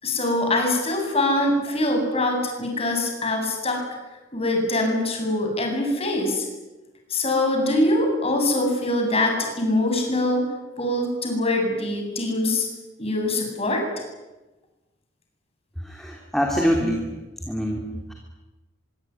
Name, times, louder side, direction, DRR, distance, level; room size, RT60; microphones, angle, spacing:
voice 1, 0.0-3.8 4.3-6.4 7.1-10.4 10.8-12.7 13.0-13.8, left 1 dB, 35° left, 2 dB, 8.0 m, -23 dB
voice 2, 15.8-17.1 17.4-18.1, equal, ahead, 0 dB, 3.3 m, -25 dB
24.5 x 24.0 x 9.8 m, 1.1 s
head